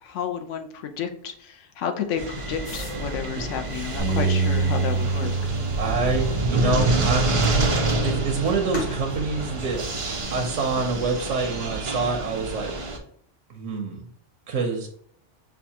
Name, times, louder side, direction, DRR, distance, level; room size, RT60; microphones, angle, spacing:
voice 1, 0.0-5.3, left 7 dB, 80° left, 6 dB, 1.0 m, -31 dB
sound 1, 2.2-13.0, right 2 dB, 40° right, 0.5 m, -27 dB
sound 2, 2.6-10.4, left 2 dB, 40° left, 1.0 m, -44 dB
Bass guitar, 4.0-10.2, right 4 dB, ahead, 0.9 m, -29 dB
voice 2, 5.8-7.4 8.0-9.8 10.3-12.8 13.5-14.0 14.5-14.9, right 4 dB, 90° right, 3 dB, 1.0 m, -26 dB
6.3 x 2.3 x 2.8 m, 0.63 s
omnidirectional pair, 1.2 m